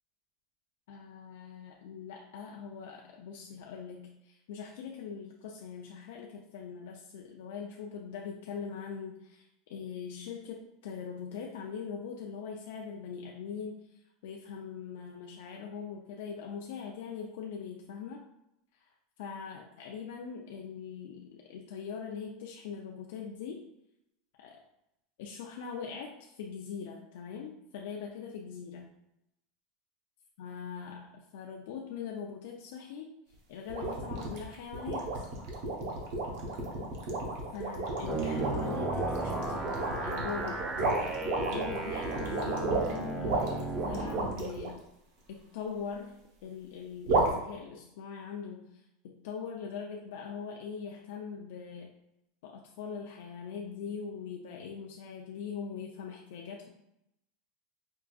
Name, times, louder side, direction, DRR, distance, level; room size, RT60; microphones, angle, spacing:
voice 1, 0.9-13.8 14.2-18.2 19.2-23.6 24.4-24.6 25.2-28.9 30.4-33.1 33.5-35.3 37.5-44.8 45.3-51.9 52.4-56.7, left 6 dB, 70° left, 0 dB, 0.4 m, -42 dB
sound 1, 33.7-44.7 47.1-47.3, right 3 dB, 60° right, 0.8 m, -32 dB
sound 2, 38.1-44.3, right 3 dB, 20° right, 0.3 m, -35 dB
4.5 x 2.4 x 2.3 m, 0.82 s
supercardioid pair, 165°, 0 cm